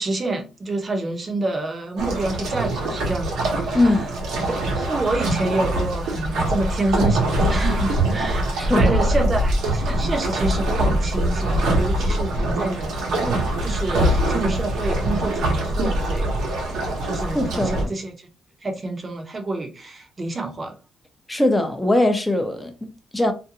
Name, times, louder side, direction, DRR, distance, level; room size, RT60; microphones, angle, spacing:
voice 1, 0.0-4.1 4.7-8.4 8.8-12.9 13.2-16.3 17.0-18.1 18.6-20.8, right 2 dB, 30° right, 0.7 m, -28 dB
sound 1, 2.0-17.8, right 1 dB, 85° right, 0.9 m, -23 dB
voice 2, 3.7-4.1 8.6-9.0 17.3-17.9 21.3-23.3, left 1 dB, 10° left, 0.5 m, -21 dB
2.5 x 2.2 x 2.7 m
cardioid pair, 90°, 0 cm